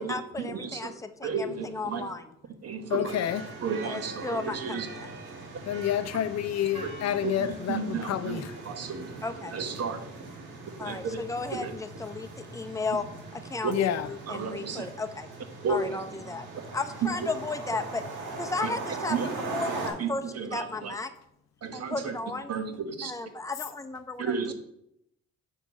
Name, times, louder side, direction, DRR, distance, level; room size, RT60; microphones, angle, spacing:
voice 1, 0.0-2.3 3.8-5.1 9.2-9.5 10.8-13.1 13.3-15.3 15.7-16.5 16.7-18.0 18.4-21.1 21.7-22.5 23.0-24.5, left 3 dB, 10° left, 0.6 m, -34 dB
voice 2, 0.5-0.9 1.2-2.1 2.6-3.1 3.6-4.9 7.2-7.3 7.7-8.4 8.7-9.2 9.5-10.0 10.8-11.2 11.5-11.7 13.6-13.7 14.3-14.9 15.6-15.8 19.1-19.3 20.0-20.1 20.4-20.9 21.6-22.1 22.5-23.1 24.2-24.5, right 5 dB, 55° right, 1.1 m, -32 dB
voice 3, 2.9-3.4 5.7-8.6 13.7-14.1, left 10 dB, 60° left, 0.5 m, -29 dB
sound 1, 3.0-19.9, right 3 dB, 80° right, 2.2 m, -40 dB
5.8 x 4.3 x 6.0 m
cardioid pair, 90°, 30 cm